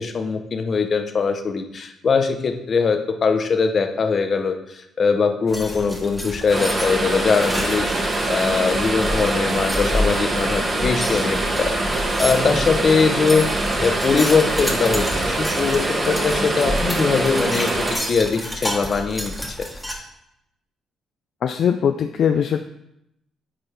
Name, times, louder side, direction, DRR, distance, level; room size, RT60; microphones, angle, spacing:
voice 1, 0.0-13.5 13.8-19.7, left 5 dB, 45° left, 6 dB, 0.8 m, -21 dB
sound 1, 5.5-19.9, equal, ahead, 1.3 m, -30 dB
sound 2, 6.5-18.0, right 2 dB, 30° right, 1.3 m, -24 dB
voice 2, 21.4-22.6, left 8 dB, 65° left, 7 dB, 0.3 m, -20 dB
8.8 x 4.3 x 3.3 m, 0.81 s
cardioid pair, 90°, 0 cm